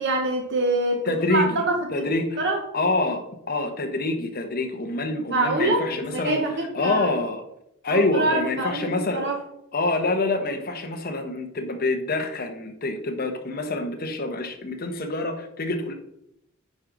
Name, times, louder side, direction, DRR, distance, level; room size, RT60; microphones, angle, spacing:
voice 1, 0.0-2.0 2.4-2.6 5.3-5.9 6.1-7.1 7.9-9.4, right 2 dB, 55° right, 1 dB, 1.1 m, -25 dB
voice 2, 1.0-1.7 1.9-2.5 2.7-6.4 6.7-7.4 7.8-9.2 9.7-15.9, left 2 dB, 45° left, 4 dB, 1.0 m, -26 dB
9.5 x 4.9 x 3.9 m, 0.79 s
head